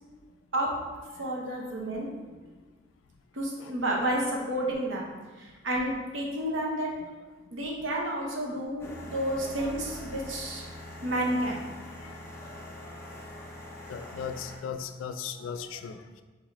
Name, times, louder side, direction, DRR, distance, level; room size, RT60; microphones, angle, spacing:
voice 1, 1.2-2.1 3.3-5.1 5.4-6.9 7.5-10.7 11.0-11.6, right 1 dB, 85° right, -1 dB, 0.9 m, -30 dB
sound 1, 8.8-14.6, left 1 dB, 15° left, 0.5 m, -43 dB
voice 2, 13.9-16.2, left 7 dB, 85° left, 9 dB, 0.3 m, -38 dB
4.1 x 3.9 x 2.9 m, 1.3 s
head